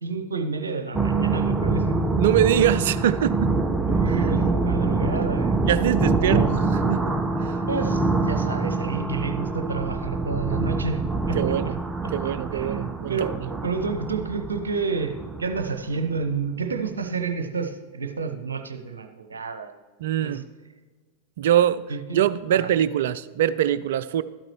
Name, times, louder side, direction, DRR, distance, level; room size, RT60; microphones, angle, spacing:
voice 1, 0.0-1.9 3.9-5.6 6.3-6.5 7.7-11.7 12.0-12.1 12.5-15.1 15.4-19.7 20.2-20.4 21.9-22.2 22.5-22.7, right 4 dB, 70° right, 6 dB, 0.9 m, -30 dB
sound 1, 0.9-16.3, right 3 dB, 10° right, 0.6 m, -25 dB
voice 2, 2.1-3.5 5.7-7.6 11.3-11.8 12.1-13.3 20.0-20.4 21.4-21.8 22.1-24.2, right 11 dB, 55° right, 15 dB, 0.4 m, -23 dB
12.5 x 8.9 x 3.1 m, 1.4 s
figure-of-eight pair, 90°, 0 cm